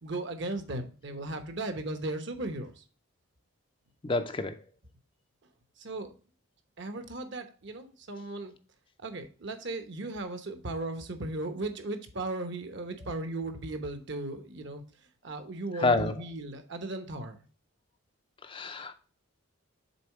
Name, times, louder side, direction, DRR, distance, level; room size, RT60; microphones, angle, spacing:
voice 1, 0.0-2.8 5.8-6.1 6.8-8.5 9.0-14.8 15.2-17.4, right 2 dB, 55° right, 1.0 m, -36 dB
voice 2, 4.0-4.6 15.8-16.2 18.4-18.9, left 3 dB, 25° left, 0.4 m, -28 dB
6.9 x 4.0 x 4.6 m
head